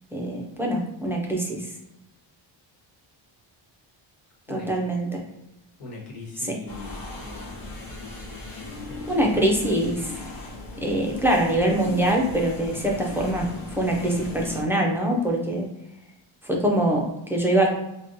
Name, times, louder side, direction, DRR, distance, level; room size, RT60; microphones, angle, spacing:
voice 1, 0.1-1.7 4.5-5.2 6.4-6.6 9.1-10.1 10.8-15.7 16.4-17.7, right 1 dB, 5° right, -1 dB, 0.4 m, -24 dB
voice 2, 4.5-4.9 5.8-7.7 8.9-9.4, left 2 dB, 85° left, -1 dB, 1.2 m, -40 dB
sound 1, 6.7-14.6, left 2 dB, 45° left, 0.8 m, -37 dB
4.9 x 2.3 x 2.5 m, 0.90 s
wide cardioid pair, 175°, 47 cm